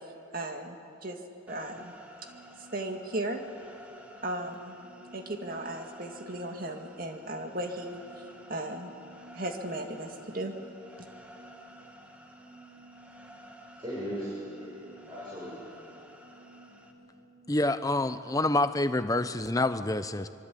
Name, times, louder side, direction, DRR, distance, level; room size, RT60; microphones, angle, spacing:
voice 1, 0.3-1.2 1.5-1.9 2.2-2.3 2.7-3.4 4.2-4.8 5.1-8.2 8.5-8.9 9.3-10.6 11.0-11.1, right 1 dB, 45° right, 4 dB, 2.1 m, -36 dB
sound 1, 1.5-16.9, equal, 5° right, 1.9 m, -53 dB
sound 2, 2.2-17.8, right 2 dB, 80° right, 3.0 m, -56 dB
voice 2, 13.8-15.9, equal, 25° right, -7 dB, 7.3 m, -39 dB
voice 3, 17.5-20.3, left 2 dB, 15° left, 11 dB, 0.7 m, -27 dB
25.0 x 24.0 x 8.5 m, 2.7 s
head